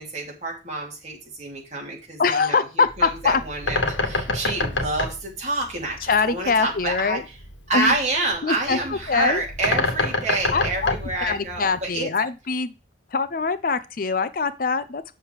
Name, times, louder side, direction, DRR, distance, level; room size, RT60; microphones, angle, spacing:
voice 1, 0.0-7.2 7.7-12.1, right 2 dB, 35° right, -1 dB, 3.1 m, -28 dB
voice 2, 2.2-3.4 6.0-7.2 7.7-7.9 8.4-9.4 10.5-11.0 11.2-12.7 13.1-15.2, left 4 dB, 45° left, 13 dB, 0.5 m, -23 dB
Bird, 2.8-12.0, left 2 dB, 80° left, 1.7 m, -28 dB
8.3 x 6.6 x 4.8 m, 0.29 s
head